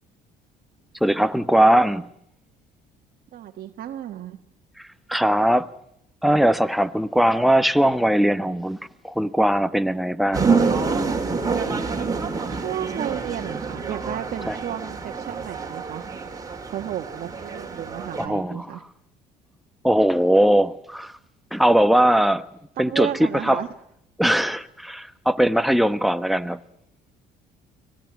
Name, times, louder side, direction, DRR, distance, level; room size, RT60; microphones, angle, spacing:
voice 1, 1.0-2.1 5.1-5.7 6.2-8.8 9.0-10.6 14.5-14.6 18.2-18.7 19.8-21.1 21.5-22.5 22.8-23.1 23.4-23.6 24.2-26.6, right 1 dB, ahead, 1.0 m, -20 dB
voice 2, 3.3-4.4 12.5-16.0 16.7-18.8 22.8-23.7, right 11 dB, 60° right, 1.5 m, -32 dB
sound 1, 10.3-18.3, right 4 dB, 20° right, 3.6 m, -27 dB
25.0 x 18.0 x 9.5 m
cardioid pair, 110°, 17 cm